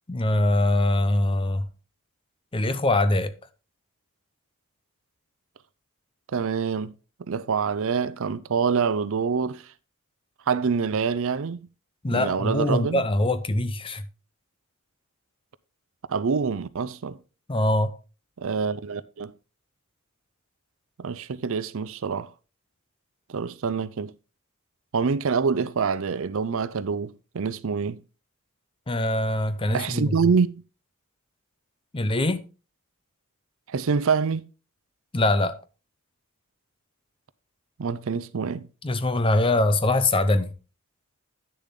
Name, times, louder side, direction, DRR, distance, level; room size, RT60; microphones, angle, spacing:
voice 1, 0.1-1.6 2.5-3.3 12.0-14.0 17.5-17.9 28.9-30.2 31.9-32.4 35.1-35.6 38.8-40.5, left 1 dB, 25° left, 0.6 m, -23 dB
voice 2, 6.3-6.9 7.3-9.6 10.5-11.6 12.1-13.0 16.1-17.2 18.4-19.3 21.0-22.3 23.3-24.1 24.9-28.0 29.7-30.5 33.7-34.4 37.8-38.7, right 5 dB, 60° right, 0.5 m, -26 dB
9.9 x 6.9 x 3.7 m
head